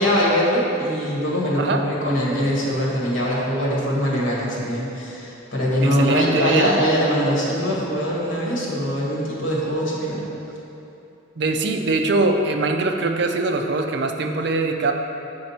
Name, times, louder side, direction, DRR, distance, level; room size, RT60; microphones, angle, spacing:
voice 1, 0.0-10.2, equal, 70° left, -5 dB, 1.7 m, -22 dB
voice 2, 5.8-6.7 11.4-14.9, right 3 dB, 55° right, 4 dB, 0.5 m, -22 dB
8.0 x 5.1 x 4.3 m, 2.8 s
head